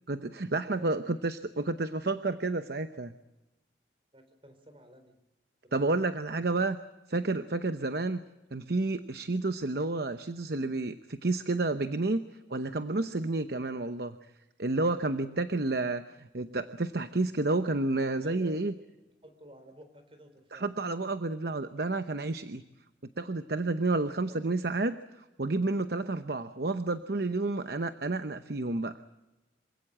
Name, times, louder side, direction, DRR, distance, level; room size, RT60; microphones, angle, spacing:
voice 1, 0.1-3.1 5.7-6.8 7.1-8.2 8.5-12.2 12.5-14.2 14.6-18.7 20.5-22.6 23.2-29.0, right 2 dB, 55° right, 10 dB, 0.9 m, -30 dB
voice 2, 0.6-1.2 4.1-5.2 5.6-6.5 18.2-20.7 23.9-24.7, equal, 30° right, 7 dB, 4.1 m, -53 dB
27.0 x 16.5 x 8.7 m, 1.0 s
head